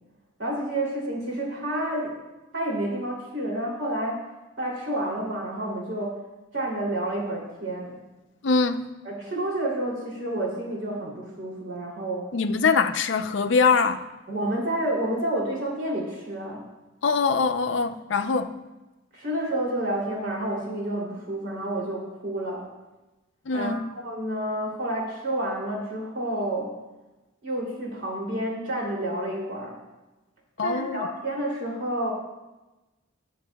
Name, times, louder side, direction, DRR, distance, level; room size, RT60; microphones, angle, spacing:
voice 1, 0.4-2.2 2.5-4.2 4.6-6.2 6.5-8.0 9.0-12.3 14.3-16.6 19.1-22.6 23.5-26.7 27.4-29.8 30.6-32.1, right 1 dB, 60° right, 2.9 m, -29 dB
voice 2, 8.4-8.9 12.3-14.1 17.0-18.6 23.5-23.9 30.6-31.1, left 4 dB, 60° left, 0.5 m, -23 dB
19.0 x 7.1 x 2.3 m
head